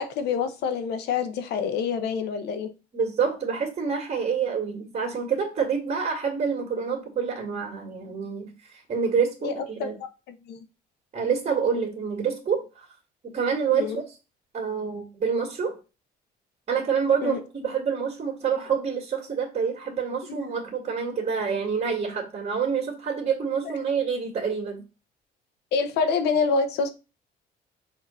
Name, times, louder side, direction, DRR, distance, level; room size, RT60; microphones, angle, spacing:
voice 1, 0.0-2.7 9.4-9.5 9.8-10.1 10.5-10.6 13.7-14.0 17.2-17.4 20.3-20.5 25.7-26.9, left 5 dB, 80° left, 0.9 m, -26 dB
voice 2, 2.9-9.9 11.1-12.9 13.3-14.0 14.5-15.8 16.7-24.8, right 6 dB, 40° right, 1.9 m, -27 dB
6.0 x 2.9 x 5.5 m
cardioid pair, 110°, 17 cm